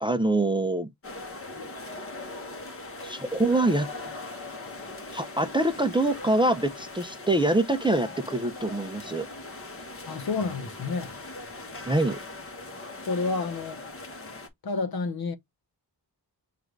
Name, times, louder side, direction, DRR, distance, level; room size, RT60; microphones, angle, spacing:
voice 1, 0.0-0.9 3.0-3.9 5.1-9.3 11.9-12.2, right 2 dB, 10° right, 0.5 m, -25 dB
sound 1, 1.0-14.5, left 2 dB, 30° left, 1.1 m, -40 dB
voice 2, 10.1-11.2 13.1-13.8 14.6-15.4, left 4 dB, 60° left, 0.9 m, -29 dB
6.5 x 2.5 x 3.1 m
wide cardioid pair, 105°, 42 cm